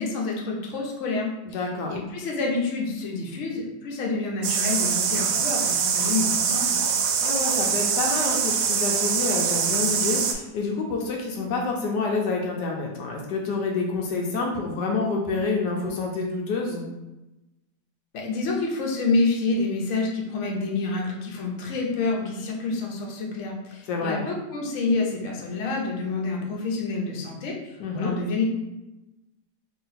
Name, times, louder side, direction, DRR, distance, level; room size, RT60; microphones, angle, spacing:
voice 1, 0.0-1.3 1.9-6.8 18.1-28.4, left 3 dB, 55° left, -1 dB, 0.9 m, -28 dB
voice 2, 1.5-1.9 7.2-16.9 23.9-24.2 27.8-28.2, left 3 dB, 75° left, 0 dB, 1.2 m, -28 dB
sound 1, 4.4-10.3, right 6 dB, 85° right, 1.2 m, -24 dB
2.9 x 2.9 x 4.0 m, 1.0 s
omnidirectional pair, 1.9 m